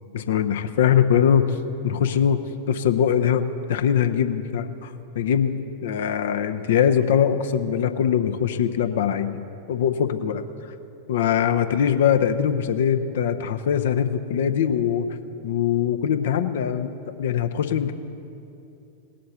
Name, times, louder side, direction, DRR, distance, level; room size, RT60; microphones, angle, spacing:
voice 1, 0.1-1.6 1.8-2.4 2.7-10.3 11.1-15.1 15.4-17.9, left 8 dB, 60° left, 9 dB, 0.7 m, -22 dB
17.5 x 7.7 x 6.9 m, 2.8 s
figure-of-eight pair, 90°, 0 cm